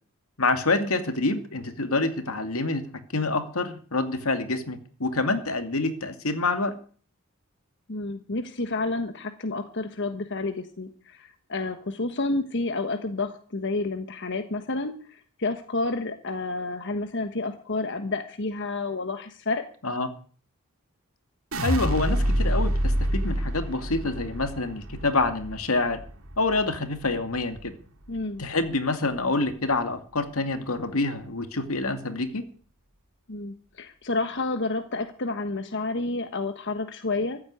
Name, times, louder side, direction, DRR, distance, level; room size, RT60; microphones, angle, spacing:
voice 1, 0.4-2.8 3.1-6.7 19.8-20.1 21.6-26.0 26.4-27.7 28.4-32.4, left 3 dB, 85° left, 8 dB, 2.4 m, -27 dB
voice 2, 7.9-19.6 28.1-28.4 33.3-37.4, left 3 dB, 60° left, 7 dB, 1.3 m, -30 dB
sound 1, 21.5-27.7 28.1-28.7, equal, 75° right, 2.5 m, -28 dB
15.0 x 8.6 x 9.8 m, 0.44 s
head